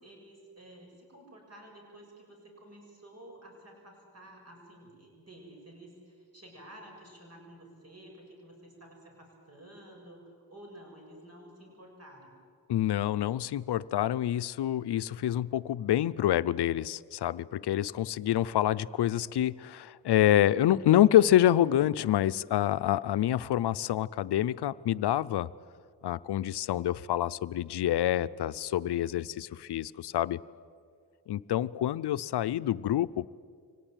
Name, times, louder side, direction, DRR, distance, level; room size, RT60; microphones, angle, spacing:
voice 1, 0.0-12.3, right 1 dB, 40° right, 1 dB, 7.3 m, -52 dB
voice 2, 12.7-25.5 26.0-30.4 31.3-33.3, left 12 dB, 75° left, 16 dB, 0.7 m, -27 dB
24.5 x 18.0 x 9.0 m, 2.1 s
cardioid pair, 80°, 40 cm